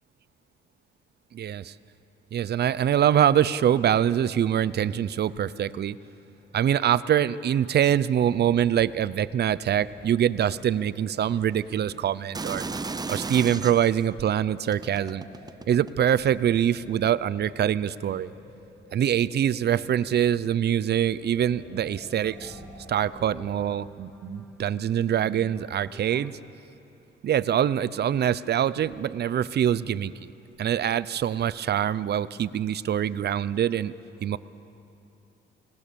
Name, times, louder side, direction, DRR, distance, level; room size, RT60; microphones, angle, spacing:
voice 1, 1.3-1.7 2.3-6.0 6.5-12.6 13.1-15.2 15.7-18.3 18.9-22.6 22.9-26.4 27.2-30.3 30.6-33.9 34.2-34.4, right 10 dB, 55° right, 17 dB, 0.7 m, -24 dB
sound 1, 8.2-23.6, left 1 dB, 45° left, 6.5 m, -50 dB
sound 2, 12.3-14.0 14.7-16.1 16.9-17.1, right 4 dB, 20° right, 0.7 m, -34 dB
sound 3, 21.3-26.3, right 1 dB, ahead, 2.5 m, -49 dB
29.0 x 19.5 x 7.1 m, 2.7 s
cardioid pair, 90°, 20 cm